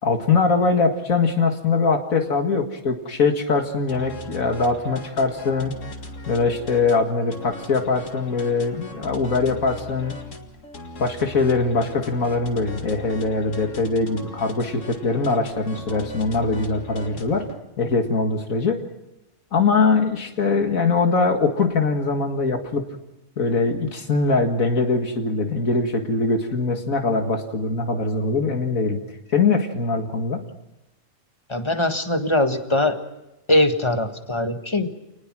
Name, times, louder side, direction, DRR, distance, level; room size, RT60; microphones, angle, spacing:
voice 1, 0.0-5.7 6.3-10.2 11.0-17.4 17.8-18.8 19.5-22.8 23.4-29.0 29.3-30.4, left 4 dB, 85° left, 4 dB, 2.3 m, -22 dB
sound 1, 3.9-17.6, left 3 dB, 65° left, 2.4 m, -39 dB
voice 2, 31.5-33.0 33.5-34.9, left 1 dB, 20° left, 7 dB, 1.6 m, -21 dB
28.0 x 20.0 x 6.2 m, 0.95 s
omnidirectional pair, 1.4 m